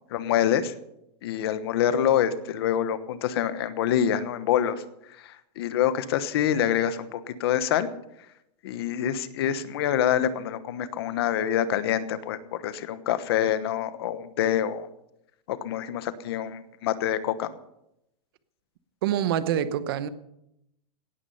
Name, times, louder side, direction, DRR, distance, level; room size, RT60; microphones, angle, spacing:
voice 1, 0.1-0.7 1.2-4.8 5.2-7.9 8.6-14.9 15.5-17.5, left 10 dB, 35° left, 1.1 m, -26 dB
voice 2, 19.0-20.1, right 10 dB, 35° right, 0.9 m, -26 dB
18.0 x 13.0 x 5.7 m
supercardioid pair, 180°, 21 cm